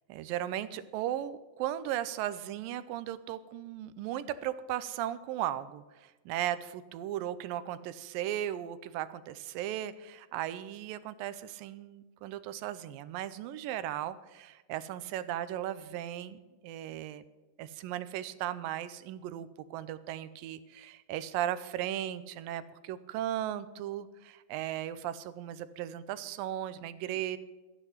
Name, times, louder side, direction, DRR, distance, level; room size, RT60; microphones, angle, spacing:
voice 1, 0.1-17.2 17.6-27.4, right 12 dB, 90° right, 14 dB, 2.4 m, -36 dB
13.5 x 10.0 x 5.6 m, 1.3 s
omnidirectional pair, 3.9 m